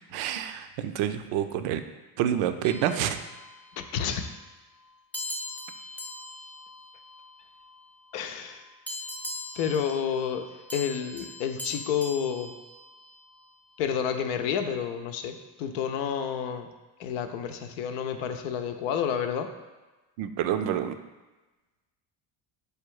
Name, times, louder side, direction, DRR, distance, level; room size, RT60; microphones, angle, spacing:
voice 1, 0.1-1.8 2.2-3.3 20.2-21.0, right 10 dB, 70° right, 9 dB, 0.5 m, -28 dB
sound 1, 2.6-3.9 5.1-7.8 8.9-13.4, left 1 dB, 5° left, 0.5 m, -41 dB
voice 2, 3.8-4.3 8.1-8.6 9.5-10.4 10.7-12.5 13.8-16.7 17.0-19.5, left 8 dB, 85° left, 7 dB, 0.6 m, -30 dB
4.8 x 2.3 x 4.6 m, 1.2 s
supercardioid pair, 80°, 49 cm